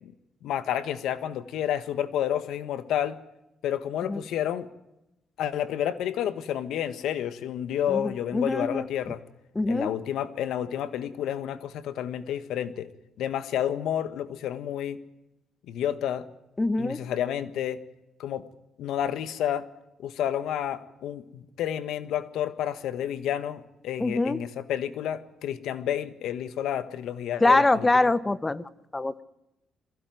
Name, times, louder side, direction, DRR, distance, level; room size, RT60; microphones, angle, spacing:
voice 1, 0.4-3.2 3.6-4.7 5.4-9.2 9.7-12.9 13.2-15.0 15.7-16.3 16.8-17.8 18.2-18.4 18.8-19.7 20.0-27.6, left 10 dB, 80° left, 13 dB, 1.4 m, -30 dB
voice 2, 7.9-8.9 9.5-9.9 16.6-17.0 24.0-24.4 27.4-29.2, left 2 dB, 20° left, 16 dB, 1.0 m, -24 dB
22.0 x 16.0 x 9.2 m, 0.90 s
cardioid pair, 90°, 0 cm